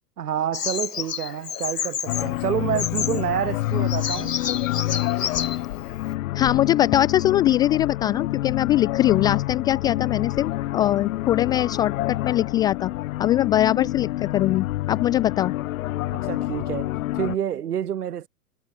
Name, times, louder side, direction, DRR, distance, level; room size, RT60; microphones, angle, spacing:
voice 1, 0.2-4.3 16.1-18.3, right 9 dB, 80° right, 2.4 m, -28 dB
Bird vocalization bird call bird song, 0.5-6.1, left 8 dB, 85° left, 4.4 m, -31 dB
sound 1, 2.0-17.4, left 16 dB, 60° left, 5.0 m, -28 dB
voice 2, 6.3-12.9 13.2-15.5, left 12 dB, 10° left, 0.3 m, -22 dB
hypercardioid pair, 115°, 46 cm